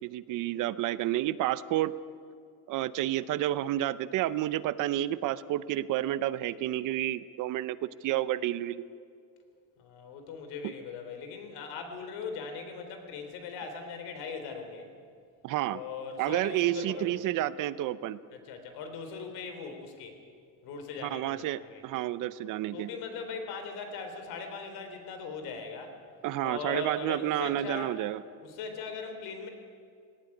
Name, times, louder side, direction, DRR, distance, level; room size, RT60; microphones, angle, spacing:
voice 1, 0.0-1.9 2.7-8.8 15.4-15.8 16.2-18.2 21.0-22.9 26.2-28.2, right 14 dB, 55° right, 16 dB, 0.7 m, -30 dB
voice 2, 9.8-14.9 15.7-17.2 18.3-20.2 20.6-21.8 22.7-26.0 26.4-28.0 28.4-29.5, left 5 dB, 75° left, 6 dB, 3.6 m, -40 dB
18.0 x 18.0 x 9.7 m, 2.3 s
cardioid pair, 155°, 38 cm